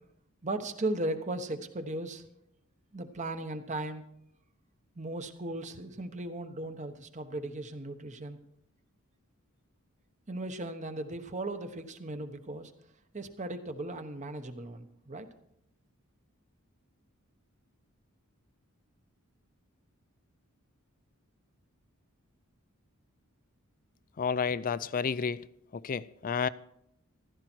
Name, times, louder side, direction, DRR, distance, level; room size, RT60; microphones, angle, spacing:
voice 1, 0.4-2.2 2.9-4.0 4.9-8.4 10.3-12.7 13.1-15.3, right 2 dB, 35° right, 1.1 m, -37 dB
voice 2, 24.2-25.4 25.8-26.5, left 6 dB, 40° left, 0.4 m, -30 dB
15.0 x 13.0 x 4.5 m
head